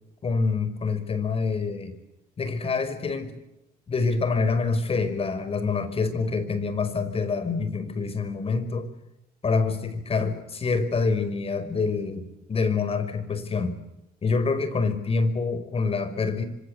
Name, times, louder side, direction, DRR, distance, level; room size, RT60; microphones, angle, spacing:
voice 1, 0.2-1.9 2.4-3.4 3.9-8.9 9.4-13.8 14.2-16.4, left 4 dB, 35° left, 11 dB, 5.2 m, -26 dB
26.0 x 25.0 x 8.1 m, 0.92 s
cardioid pair, 110°, 17 cm